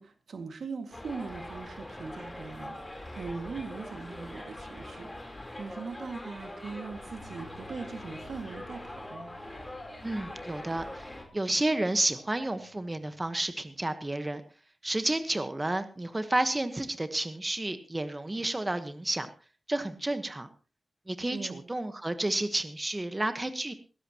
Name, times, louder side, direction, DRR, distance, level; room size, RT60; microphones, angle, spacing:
voice 1, 0.0-9.3 21.3-21.6, right 4 dB, 80° right, 7 dB, 2.0 m, -41 dB
Subway metro underground, 0.9-11.2, left 1 dB, 15° left, 3.7 m, -43 dB
sound 1, 7.2-13.4, left 2 dB, 45° right, 7.8 m, -58 dB
voice 2, 10.0-14.4 14.8-19.3 19.7-20.5 21.1-23.7, right 1 dB, 20° right, 9 dB, 1.2 m, -31 dB
19.0 x 16.0 x 3.0 m, 0.33 s
wide cardioid pair, 135°, 0 cm